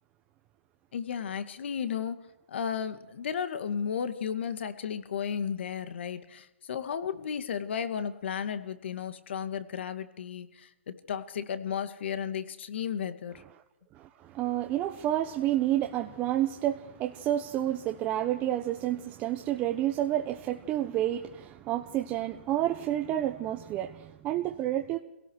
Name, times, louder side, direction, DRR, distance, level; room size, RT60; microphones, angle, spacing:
voice 1, 0.9-2.2 2.5-13.4, left 7 dB, 60° left, 2.1 m, -34 dB
voice 2, 13.9-25.0, right 13 dB, 20° right, 1.1 m, -30 dB
25.5 x 17.5 x 6.4 m
hypercardioid pair, 150°, 7 cm